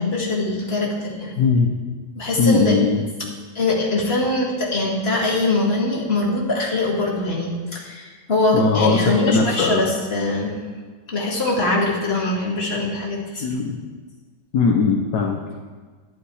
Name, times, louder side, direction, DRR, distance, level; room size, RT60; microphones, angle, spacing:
voice 1, 0.0-1.3 2.2-2.8 3.5-10.6 11.1-13.4, left 2 dB, 35° left, -4 dB, 2.6 m, -22 dB
voice 2, 1.4-1.7 2.4-3.1 8.5-9.8 13.3-13.8 14.5-15.4, left 4 dB, 65° left, 1 dB, 1.5 m, -19 dB
11.5 x 11.5 x 4.8 m, 1.5 s
omnidirectional pair, 1.9 m